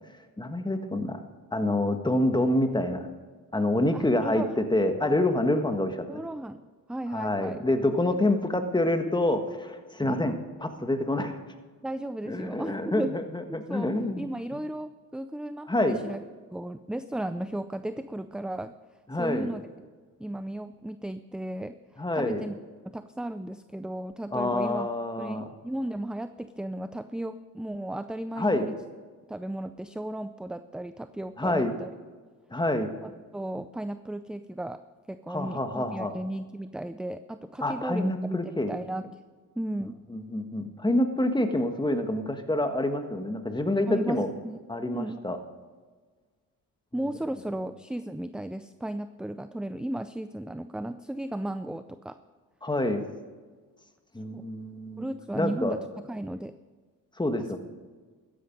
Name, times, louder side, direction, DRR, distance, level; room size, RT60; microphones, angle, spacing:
voice 1, 0.4-1.2 1.5-3.1 3.5-6.2 7.1-11.4 12.3-14.2 15.7-16.0 19.1-19.5 22.0-22.4 24.3-25.5 28.4-28.7 31.4-31.7 32.5-32.9 35.3-36.1 37.6-38.7 40.1-44.3 44.7-45.4 52.6-53.0 54.1-55.0 55.3-55.7 57.2-57.6, left 1 dB, 15° left, 7 dB, 1.5 m, -27 dB
voice 2, 3.9-4.6 6.1-6.6 6.9-7.6 11.8-13.2 13.5-13.9 14.2-16.2 16.5-18.7 19.2-19.6 20.2-22.5 22.9-24.9 25.2-28.7 29.3-31.9 33.0-34.8 35.1-39.2 39.6-40.0 43.9-44.6 44.9-45.2 46.9-52.2 54.3-54.5 55.0-56.5 57.4-57.6, right 1 dB, 5° right, 11 dB, 0.4 m, -35 dB
13.5 x 10.5 x 5.3 m, 1.5 s
cardioid pair, 90°, 35 cm